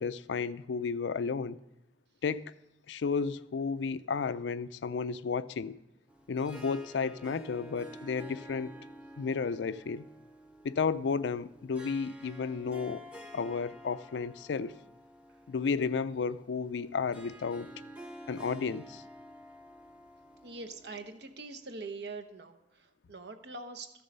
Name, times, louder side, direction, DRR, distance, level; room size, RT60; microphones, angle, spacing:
voice 1, 0.0-1.6 2.2-2.5 2.9-5.8 6.3-8.7 9.2-10.0 10.6-13.0 13.3-14.7 15.5-17.7 18.3-19.0, left 5 dB, 90° left, 0.4 m, -32 dB
Harp, 6.1-21.4, equal, 5° right, 0.9 m, -50 dB
voice 2, 20.4-23.9, right 3 dB, 70° right, 1.0 m, -43 dB
14.0 x 6.9 x 5.4 m
head